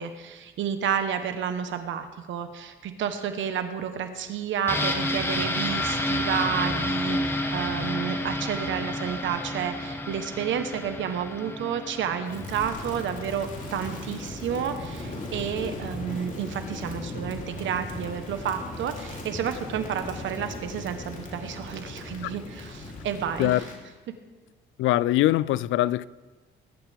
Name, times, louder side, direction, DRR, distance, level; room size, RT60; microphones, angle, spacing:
voice 1, 0.0-23.6, right 8 dB, 75° right, 1.2 m, -31 dB
sound 1, 4.7-14.3 14.6-14.7, left 1 dB, 10° left, 1.5 m, -30 dB
Crackle, 12.2-23.8, left 2 dB, 40° left, 3.3 m, -38 dB
voice 2, 24.8-26.1, left 15 dB, 80° left, 0.4 m, -22 dB
21.0 x 12.0 x 3.5 m
cardioid pair, 90°, 20 cm